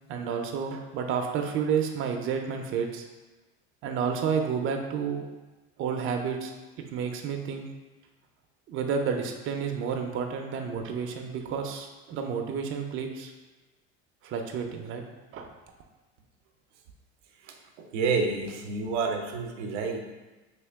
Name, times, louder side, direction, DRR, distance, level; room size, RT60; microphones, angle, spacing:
voice 1, 0.1-3.0 3.8-5.3 5.8-6.5 6.8-7.7 8.7-13.3 14.2-15.0 15.3-15.5, right 6 dB, 40° right, 3 dB, 0.5 m, -30 dB
voice 2, 17.4-20.1, right 4 dB, 85° right, 3 dB, 0.6 m, -29 dB
3.0 x 2.9 x 3.4 m, 1.2 s
supercardioid pair, 105°, 34 cm